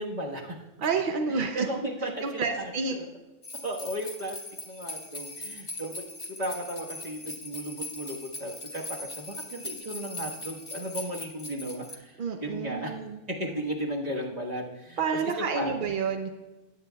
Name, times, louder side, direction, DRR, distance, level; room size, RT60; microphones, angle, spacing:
voice 1, 0.0-0.6 1.3-3.1 3.6-4.4 4.6-13.0 13.3-15.8, right 1 dB, 30° right, -2 dB, 1.4 m, -35 dB
voice 2, 0.8-1.7 2.2-3.0 12.2-13.2 15.0-16.3, right 5 dB, 60° right, 5 dB, 0.5 m, -29 dB
sound 1, 3.4-11.9, left 2 dB, 25° left, 0.9 m, -40 dB
18.0 x 8.7 x 2.3 m, 1.1 s
omnidirectional pair, 1.6 m